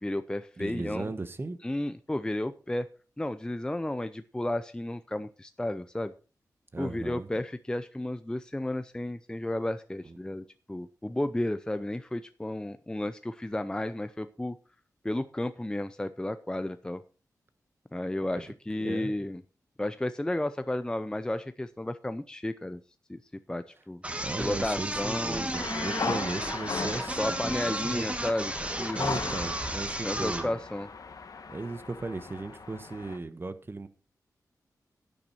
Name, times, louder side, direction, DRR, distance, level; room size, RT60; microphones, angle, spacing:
voice 1, 0.0-1.1 1.6-2.9 3.2-6.1 6.8-14.6 15.0-17.0 17.9-19.4 19.8-22.8 23.1-23.2 23.5-24.0 24.4-25.5 27.2-29.2 30.0-30.9, left 1 dB, 10° left, 11 dB, 0.5 m, -33 dB
voice 2, 0.6-1.7 6.7-7.3 10.0-10.2 18.8-19.1 24.2-28.1 28.9-30.5 31.5-33.9, right 3 dB, 35° right, 11 dB, 1.2 m, -36 dB
sound 1, 24.0-30.5, right 1 dB, 20° right, 1.7 m, -33 dB
sound 2, 25.5-33.2, left 5 dB, 65° left, 1.3 m, -37 dB
10.5 x 9.1 x 4.2 m, 0.35 s
cardioid pair, 75°, 7 cm